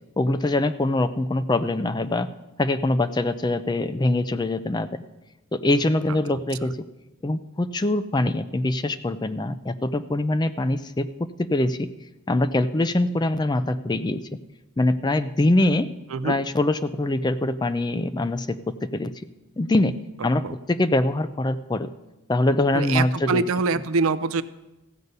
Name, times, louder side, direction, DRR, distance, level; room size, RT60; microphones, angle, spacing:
voice 1, 0.2-2.3 2.6-5.0 5.5-6.8 7.2-11.1 11.5-11.9 12.3-14.2 14.8-15.9 16.2-19.1 19.6-19.9 20.2-20.4 20.7-21.9 22.3-23.4, left 2 dB, 20° left, 12 dB, 0.4 m, -23 dB
voice 2, 6.1-6.7 16.1-16.4 20.4-20.6 22.7-24.4, right 4 dB, 80° right, 14 dB, 0.5 m, -25 dB
15.0 x 5.4 x 8.0 m, 1.0 s
head